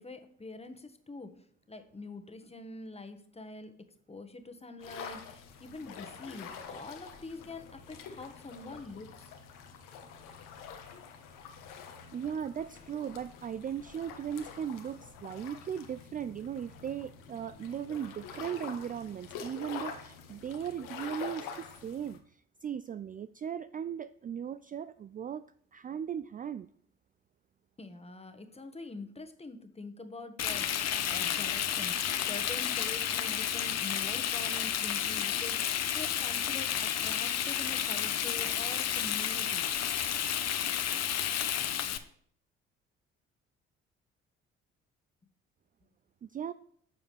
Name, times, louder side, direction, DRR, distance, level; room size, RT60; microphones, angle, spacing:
voice 1, 0.0-1.3 1.7-3.7 4.1-9.3 27.8-39.7, left 2 dB, 20° left, 7 dB, 1.5 m, -45 dB
sound 1, 4.8-22.2, left 6 dB, 70° left, 1.5 m, -46 dB
voice 2, 12.1-25.4 25.7-26.7 46.2-46.5, right 8 dB, 25° right, 14 dB, 0.4 m, -38 dB
Frying (food), 30.4-42.0, left 10 dB, 50° left, 1.0 m, -31 dB
12.5 x 7.1 x 3.4 m, 0.62 s
hypercardioid pair, 50°, 33 cm